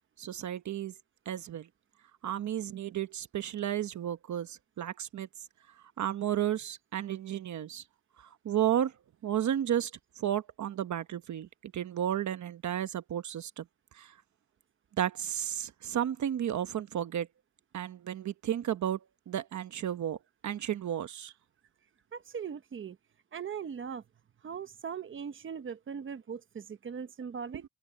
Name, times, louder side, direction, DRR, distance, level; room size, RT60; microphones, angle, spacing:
voice 1, 0.2-0.9 1.3-1.7 2.2-5.3 5.7-7.8 8.2-9.0 9.2-9.9 10.2-13.7 13.9-14.2 15.0-17.3 17.7-20.2 20.4-21.3 27.5-27.6, right 10 dB, 70° right, 1.0 m, -33 dB
voice 2, 22.1-23.0 23.3-24.0 24.4-27.6, right 7 dB, 45° right, 1.0 m, -39 dB
wide cardioid pair, 135°, 29 cm